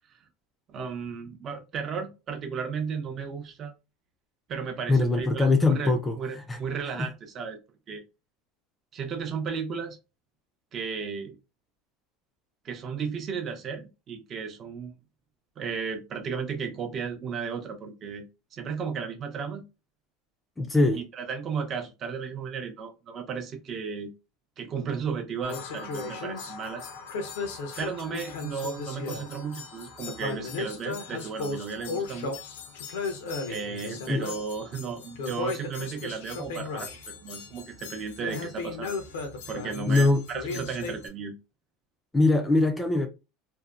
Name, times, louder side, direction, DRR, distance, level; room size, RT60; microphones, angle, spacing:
voice 1, 0.7-3.7 4.5-7.6 7.9-8.0 8.9-10.0 10.7-11.4 12.6-14.9 15.6-18.2 18.5-19.6 20.9-24.1 24.6-26.9 27.8-32.3 33.5-39.0 39.5-41.3, right 6 dB, 40° right, 0.6 m, -34 dB
voice 2, 4.9-6.6 6.9-7.1 20.6-21.0 34.1-34.3 39.9-40.2 42.1-43.1, left 2 dB, 15° left, 0.4 m, -22 dB
sound 1, 25.4-41.1, left 4 dB, 90° left, 0.6 m, -36 dB
2.6 x 2.1 x 2.4 m
supercardioid pair, 120°, 0 cm